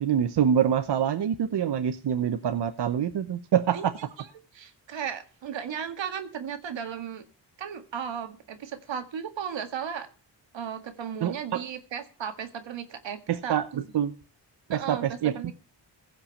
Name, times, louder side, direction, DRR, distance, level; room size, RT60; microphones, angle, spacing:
voice 1, 0.0-3.9 11.2-11.6 13.3-14.1 14.7-15.5, right 9 dB, 65° right, 10 dB, 0.9 m, -26 dB
voice 2, 4.5-7.2 7.6-10.1 10.5-13.6 14.7-15.5, right 8 dB, 85° right, 8 dB, 1.9 m, -35 dB
16.0 x 5.8 x 7.1 m, 0.35 s
cardioid pair, 95°, 44 cm